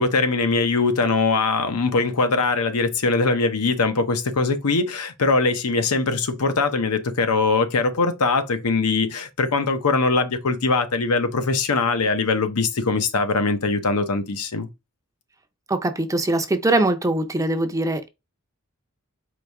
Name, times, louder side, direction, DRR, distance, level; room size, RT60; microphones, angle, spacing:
voice 1, 0.0-14.7, left 3 dB, 80° left, 0.8 m, -22 dB
voice 2, 15.7-18.1, right 2 dB, 15° right, 0.5 m, -22 dB
4.8 x 2.7 x 3.5 m
head